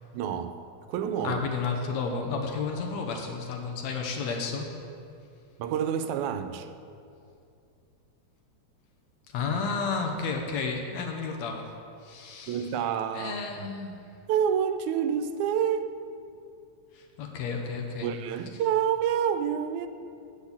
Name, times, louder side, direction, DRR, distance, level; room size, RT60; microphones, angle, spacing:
voice 1, 0.1-1.5 5.6-6.7 12.5-13.7 14.3-16.0 18.0-19.9, right 8 dB, 85° right, 2.0 m, -28 dB
voice 2, 1.2-4.7 9.3-11.7 12.0-12.6 13.1-14.0 16.9-18.1, left 5 dB, 75° left, 2.0 m, -32 dB
8.4 x 6.3 x 7.1 m
omnidirectional pair, 3.4 m